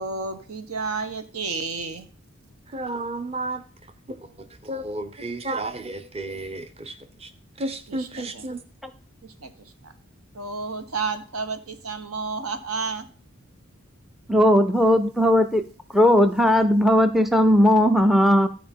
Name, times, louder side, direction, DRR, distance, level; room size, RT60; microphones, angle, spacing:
voice 1, 0.0-2.1 7.9-8.1 8.3-8.4 9.2-9.9 10.3-13.1, right 4 dB, 80° right, 1.2 m, -31 dB
voice 2, 2.7-7.3 7.6-8.6, right 2 dB, 25° right, 0.8 m, -33 dB
voice 3, 14.3-15.6 15.9-18.5, equal, ahead, 0.4 m, -17 dB
12.5 x 4.8 x 5.4 m
head